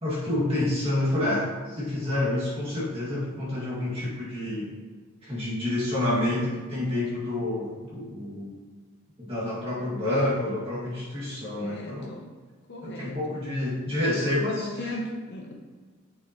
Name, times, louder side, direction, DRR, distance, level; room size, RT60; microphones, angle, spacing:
voice 1, 0.0-4.7 5.2-8.5 9.2-12.1 12.8-14.7, left 1 dB, 25° right, -7 dB, 2.1 m, -28 dB
voice 2, 11.4-12.3 12.7-13.2 13.7-15.5, left 1 dB, 50° left, 1 dB, 0.8 m, -38 dB
7.2 x 6.9 x 3.0 m, 1.5 s
head